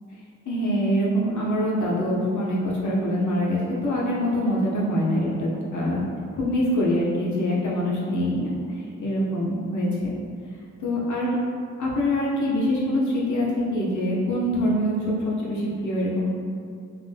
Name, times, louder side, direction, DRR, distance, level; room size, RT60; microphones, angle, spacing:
voice 1, 0.5-6.0 6.3-10.1 10.8-11.4 11.8-16.3, equal, 80° left, -5 dB, 0.7 m, -24 dB
2.5 x 2.1 x 3.3 m, 2.3 s
cardioid pair, 60°, 30 cm